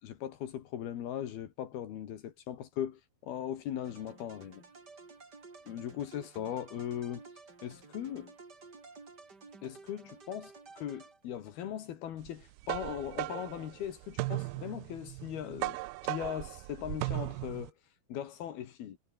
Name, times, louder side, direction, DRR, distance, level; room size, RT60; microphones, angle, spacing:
voice 1, 0.0-4.6 5.7-7.2 7.6-8.3 9.6-15.8 16.0-17.7 18.1-19.0, left 10 dB, 75° left, 3.8 m, -39 dB
sound 1, 3.8-11.6, right 4 dB, 25° right, 3.6 m, -53 dB
sound 2, 12.3-17.7, right 20 dB, 90° right, 2.7 m, -37 dB
omnidirectional pair, 4.5 m